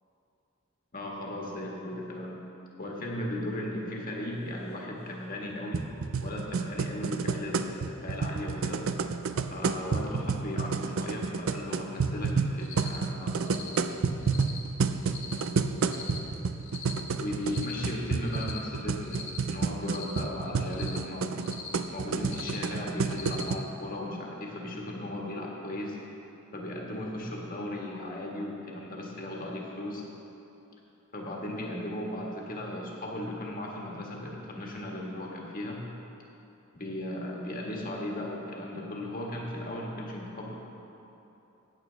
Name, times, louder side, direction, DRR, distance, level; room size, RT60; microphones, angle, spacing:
voice 1, 0.9-2.4 2.8-5.9 6.2-8.9 9.5-13.8 17.2-21.3 21.9-26.0 26.5-30.0 31.1-35.8 36.7-40.5, left 1 dB, 45° left, -2 dB, 1.6 m, -37 dB
sound 1, 5.7-23.6, right 5 dB, 70° right, 0.5 m, -30 dB
Cricket, 12.6-13.0 13.4-13.8 14.2-14.6 15.0-15.4 15.8-16.2 16.6-17.0 17.4-17.8 18.2-18.6 19.0-19.4 19.8-20.2 20.6-21.0 21.4-21.8 22.2-22.6 23.0-23.5, left 6 dB, 65° left, 1.5 m, -42 dB
14.5 x 8.6 x 3.4 m, 2.9 s
head